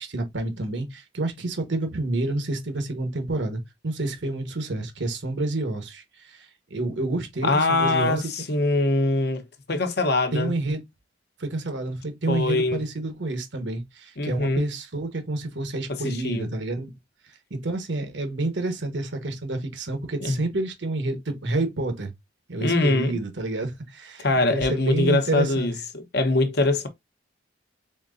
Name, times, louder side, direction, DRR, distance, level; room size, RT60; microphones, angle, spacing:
voice 1, 0.0-8.2 10.3-10.8 11.4-16.9 17.5-22.1 22.5-25.7, right 2 dB, 80° right, 1.3 m, -29 dB
voice 2, 7.4-9.4 9.7-10.5 12.3-12.8 14.2-14.6 15.9-16.5 20.2-20.4 22.6-23.2 24.2-26.9, left 2 dB, 60° left, 0.9 m, -23 dB
4.4 x 3.8 x 2.6 m
head